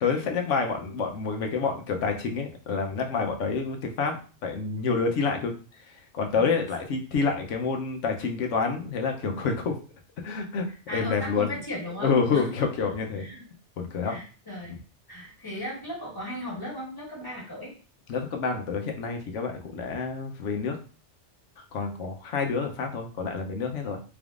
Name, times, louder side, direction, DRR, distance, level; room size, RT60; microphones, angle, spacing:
voice 1, 0.0-5.5 6.1-9.8 10.2-10.7 10.9-11.5 12.0-13.3 13.8-14.2 18.1-20.8 21.6-24.0, left 5 dB, 85° left, 4 dB, 1.1 m, -28 dB
voice 2, 10.7-12.4 12.7-12.8 13.2-13.4 14.0-14.7 15.1-17.8, left 1 dB, 20° left, -3 dB, 1.5 m, -37 dB
4.0 x 3.5 x 2.4 m, 0.37 s
omnidirectional pair, 1.2 m